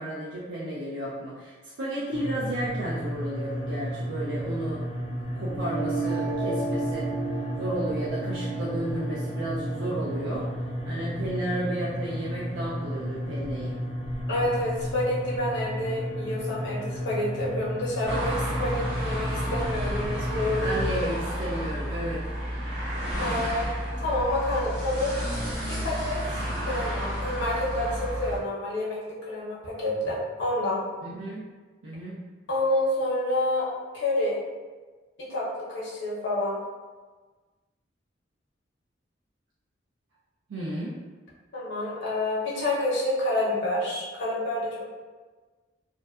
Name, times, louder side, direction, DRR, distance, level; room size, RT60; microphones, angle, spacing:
voice 1, 0.0-4.8 5.2-7.1 7.6-10.5 10.9-13.8 20.5-22.2 31.0-31.5 31.8-32.2 40.5-41.0, right 1 dB, 90° right, -7 dB, 0.4 m, -33 dB
sound 1, 2.1-20.9, equal, 30° left, 0.3 m, -33 dB
sound 2, 5.4-11.4, right 3 dB, 40° right, 0.8 m, -34 dB
voice 2, 14.3-21.0 23.2-23.7 24.0-25.1 25.7-30.8 32.5-33.7 33.9-34.4 35.2-36.6 41.5-44.8, left 1 dB, 65° left, -6 dB, 0.7 m, -28 dB
sound 3, 18.0-28.4, equal, 65° right, 1.3 m, -31 dB
2.5 x 2.1 x 2.3 m, 1.4 s
head